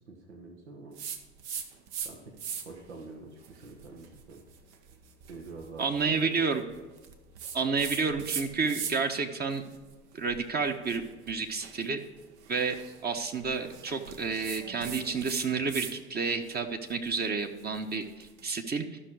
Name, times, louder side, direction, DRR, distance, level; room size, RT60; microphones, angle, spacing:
voice 1, 0.1-0.9 2.0-2.3 2.6-4.4 5.3-5.9 6.2-6.3, right 3 dB, 85° right, 1 dB, 1.4 m, -46 dB
sound 1, 1.0-2.1 2.4-2.9 3.4-9.2 9.5-16.0 16.3-18.5, right 7 dB, 65° right, 1.1 m, -41 dB
voice 2, 5.8-6.7 7.5-9.6 10.1-12.0 12.5-12.8 13.0-18.8, right 4 dB, 30° right, 5 dB, 1.0 m, -30 dB
12.5 x 6.0 x 4.8 m, 1.2 s
hypercardioid pair, 80°, 33 cm